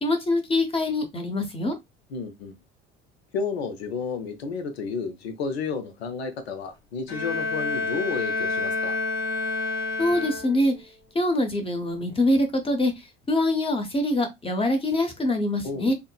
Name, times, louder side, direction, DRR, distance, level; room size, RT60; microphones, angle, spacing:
voice 1, 0.0-1.8 10.0-10.7 11.1-15.9, left 1 dB, 15° left, 0.7 m, -24 dB
voice 2, 2.1-2.6 3.3-9.0 15.6-15.9, left 5 dB, 70° left, 0.7 m, -31 dB
Bowed string instrument, 7.1-10.8, left 3 dB, 35° left, 1.1 m, -29 dB
3.6 x 2.1 x 2.2 m
figure-of-eight pair, 60°, 32 cm